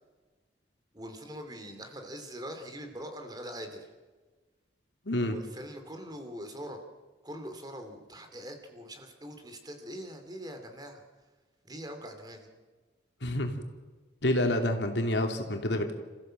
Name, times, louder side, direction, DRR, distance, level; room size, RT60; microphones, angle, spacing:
voice 1, 0.9-3.9 5.2-6.8 7.2-11.0 11.6-12.5, equal, 20° right, 5 dB, 2.8 m, -43 dB
voice 2, 13.2-13.6 14.2-15.9, left 1 dB, 80° left, 4 dB, 2.8 m, -28 dB
29.5 x 15.0 x 7.7 m, 1.3 s
head